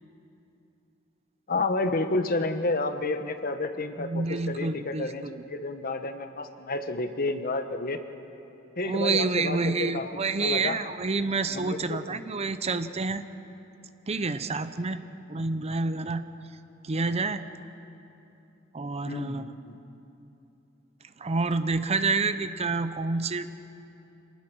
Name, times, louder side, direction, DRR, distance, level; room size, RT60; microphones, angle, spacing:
voice 1, 1.5-8.0 8.8-10.8 11.5-12.2 19.0-19.8, left 2 dB, 45° left, 8 dB, 1.2 m, -30 dB
voice 2, 4.0-5.4 8.8-13.2 14.1-15.0 15.3-16.2 16.8-17.4 18.7-19.5 21.2-23.5, right 3 dB, 30° right, 11 dB, 0.7 m, -28 dB
26.5 x 19.0 x 6.2 m, 2.8 s
head